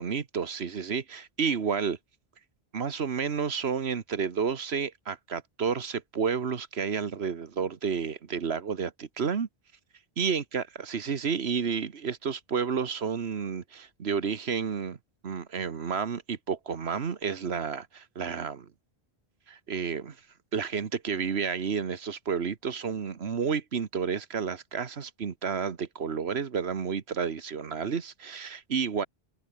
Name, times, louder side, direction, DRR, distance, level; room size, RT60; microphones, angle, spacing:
voice 1, 0.0-2.0 2.7-9.5 10.2-15.0 15.2-18.7 19.5-20.2 20.5-29.1, right 6 dB, 80° right, 1.5 m, -31 dB
open air
omnidirectional pair, 1.1 m